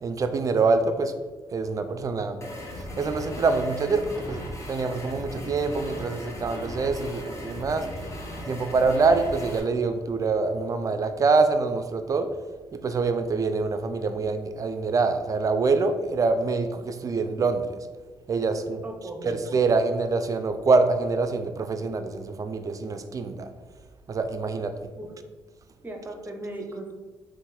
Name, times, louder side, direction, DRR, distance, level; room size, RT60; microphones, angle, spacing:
voice 1, 0.0-1.1 1.5-2.4 3.0-7.8 8.5-12.3 12.8-17.6 18.3-18.8 19.2-23.5 24.1-24.7, right 4 dB, 35° right, 8 dB, 0.4 m, -25 dB
sound 1, 2.4-9.6, left 1 dB, 30° left, 0.9 m, -37 dB
voice 2, 18.8-19.4 24.9-25.1 25.8-26.9, right 1 dB, 20° right, 3 dB, 0.8 m, -37 dB
3.7 x 2.5 x 4.1 m, 1.3 s
cardioid pair, 90°, 10 cm